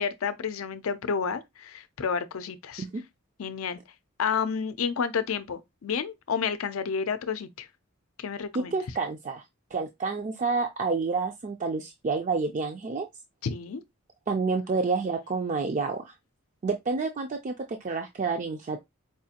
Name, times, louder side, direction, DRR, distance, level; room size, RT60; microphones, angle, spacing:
voice 1, 0.0-2.8 3.4-3.8 4.2-7.7 8.2-8.7 13.4-13.8, left 6 dB, 85° left, 0.5 m, -30 dB
voice 2, 8.5-9.4 9.7-13.1 14.3-16.1 16.6-18.8, right 4 dB, 35° right, 0.4 m, -29 dB
4.7 x 2.4 x 2.8 m
head